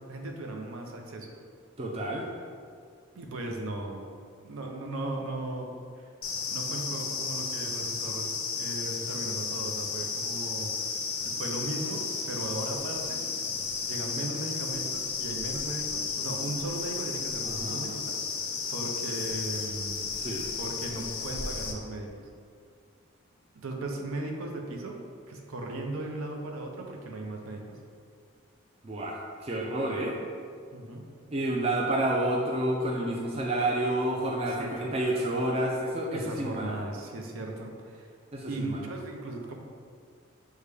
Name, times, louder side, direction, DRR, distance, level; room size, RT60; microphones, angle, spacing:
voice 1, 0.1-1.3 3.1-4.1 4.4-6.1 6.5-10.7 11.2-13.2 13.8-18.4 18.7-20.1 20.6-22.2 23.6-25.0 25.3-27.8 30.7-31.0 34.5-35.0 36.1-38.1 38.4-39.5, right 2 dB, 75° right, 2 dB, 0.6 m, -37 dB
voice 2, 1.8-2.3 17.4-17.9 20.2-20.5 28.8-30.1 31.3-36.8 38.3-38.8, right 1 dB, 25° right, -2 dB, 0.3 m, -29 dB
sound 1, 6.2-21.7, left 5 dB, 80° left, 0.5 m, -33 dB
6.4 x 2.2 x 3.3 m, 2.2 s
head